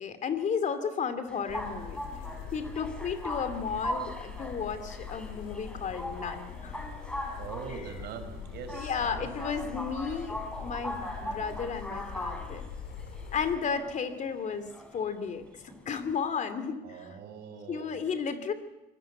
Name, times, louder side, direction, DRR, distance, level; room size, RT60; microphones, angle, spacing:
voice 1, 0.0-2.0 2.5-6.8 7.7-7.8 8.7-12.6 13.3-15.4 15.9-17.2 17.7-18.5, left 6 dB, 45° left, 10 dB, 2.8 m, -33 dB
sound 1, 1.3-16.1, equal, 5° left, 5.4 m, -40 dB
sound 2, 1.5-13.6, left 7 dB, 75° left, 3.8 m, -43 dB
voice 2, 7.4-9.3 16.8-18.0, right 6 dB, 75° right, 7 dB, 4.7 m, -42 dB
26.5 x 20.5 x 8.1 m, 0.97 s
cardioid pair, 110°, 17 cm